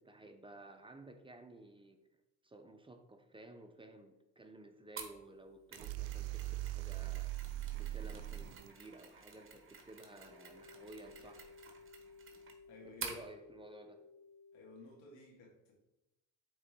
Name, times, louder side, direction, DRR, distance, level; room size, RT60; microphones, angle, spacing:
voice 1, 0.0-2.0 2.4-7.3 7.7-11.6 12.8-14.0, right 2 dB, 15° right, 5 dB, 0.7 m, -54 dB
Mechanisms, 5.0-13.3, right 5 dB, 35° right, 1.5 m, -51 dB
sound 1, 5.7-8.7, right 16 dB, 80° right, 0.5 m, -40 dB
sound 2, 9.9-14.9, left 4 dB, 45° left, 0.9 m, -58 dB
voice 2, 12.7-13.1 14.5-15.7, left 2 dB, 80° left, -1 dB, 2.3 m, -56 dB
8.8 x 3.8 x 3.7 m, 0.96 s
cardioid pair, 95°, 36 cm